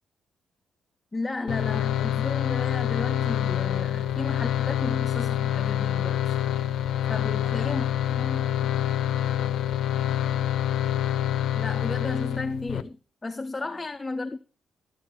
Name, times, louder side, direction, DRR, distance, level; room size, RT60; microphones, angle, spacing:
voice 1, 1.1-6.4 7.1-7.8 8.2-8.4 11.6-14.4, left 3 dB, 15° left, 0.4 m, -33 dB
sound 1, 1.5-12.8, left 11 dB, 80° left, 0.4 m, -26 dB
voice 2, 7.1-10.5 13.6-13.8, left 1 dB, 5° right, 2.9 m, -48 dB
12.0 x 9.0 x 3.0 m
cardioid pair, 165°, 0 cm